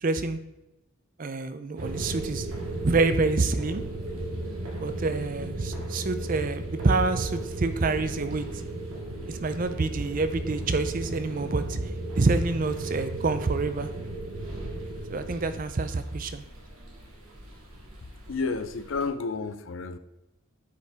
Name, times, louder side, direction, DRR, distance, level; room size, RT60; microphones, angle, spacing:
voice 1, 0.0-0.4 1.2-2.5 2.8-3.8 4.8-8.5 9.3-11.8 12.1-13.9 15.1-16.4, right 3 dB, 40° right, 11 dB, 0.5 m, -27 dB
sound 1, 1.8-15.6, right 2 dB, 65° right, 1.1 m, -35 dB
sound 2, 1.8-19.1, equal, 85° right, 2.0 m, -46 dB
voice 2, 18.3-20.0, left 4 dB, 60° left, 11 dB, 0.5 m, -31 dB
9.3 x 5.4 x 3.4 m, 0.94 s
head